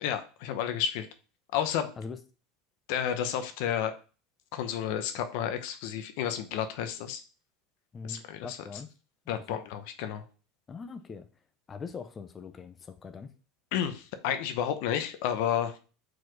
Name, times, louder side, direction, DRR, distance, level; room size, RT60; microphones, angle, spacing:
voice 1, 0.0-1.1 1.5-1.9 2.9-3.9 4.5-7.2 8.0-8.6 9.3-10.2 13.7-15.8, left 9 dB, 70° left, 9 dB, 0.8 m, -31 dB
voice 2, 7.9-8.9 9.3-9.6 10.7-11.3 11.7-13.3, left 5 dB, 25° left, 8 dB, 0.7 m, -42 dB
4.8 x 4.3 x 4.7 m, 0.36 s
supercardioid pair, 115°, 0 cm